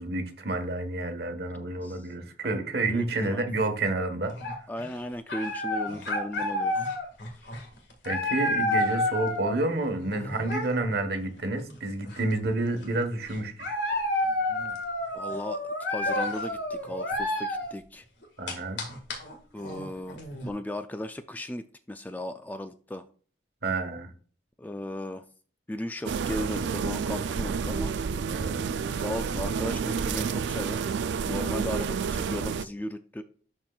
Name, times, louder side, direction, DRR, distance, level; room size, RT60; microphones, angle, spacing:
voice 1, 0.0-4.3 8.0-13.7 18.4-18.9 23.6-24.1 28.3-28.6, right 2 dB, 60° right, 7 dB, 1.2 m, -29 dB
voice 2, 1.6-2.1 2.4-2.5 2.9-3.5 4.7-6.9 7.3-7.5 10.2-10.3 15.1-18.0 19.5-20.2 20.4-23.0 24.6-25.2 25.7-27.9 28.9-30.9 31.3-33.2, left 1 dB, 10° left, 9 dB, 0.3 m, -36 dB
sound 1, 4.2-4.9 5.3-9.6 10.0-10.9 11.7-11.8 12.1-12.8 13.3-17.7 18.2-20.5, left 1 dB, 80° left, 1.7 m, -30 dB
sound 2, 26.1-32.7, right 6 dB, 80° right, 0.3 m, -30 dB
11.5 x 4.4 x 2.3 m, 0.42 s
head